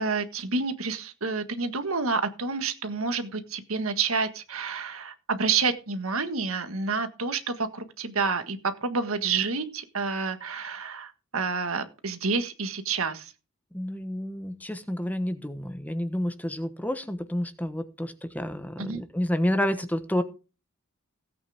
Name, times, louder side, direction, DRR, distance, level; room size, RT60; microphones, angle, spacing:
voice 1, 0.0-13.3 18.8-19.0, right 4 dB, 90° right, 9 dB, 1.7 m, -29 dB
voice 2, 13.7-20.2, equal, 10° left, 9 dB, 1.2 m, -29 dB
16.5 x 8.8 x 3.6 m, 0.32 s
head